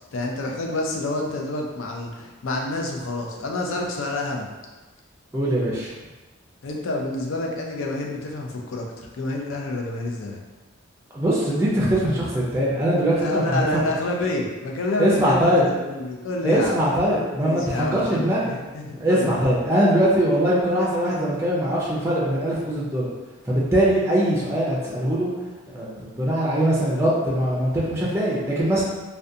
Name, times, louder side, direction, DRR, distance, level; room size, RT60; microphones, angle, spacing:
voice 1, 0.1-4.5 6.6-10.4 13.1-15.4 15.7-16.8 17.4-19.3, left 2 dB, 85° left, 0 dB, 0.4 m, -28 dB
voice 2, 5.3-5.9 11.1-13.6 15.0-15.6 16.4-18.5 19.0-23.1 23.5-25.3 25.7-28.8, right 1 dB, 15° right, -6 dB, 0.4 m, -21 dB
2.4 x 2.2 x 2.6 m, 1.2 s
head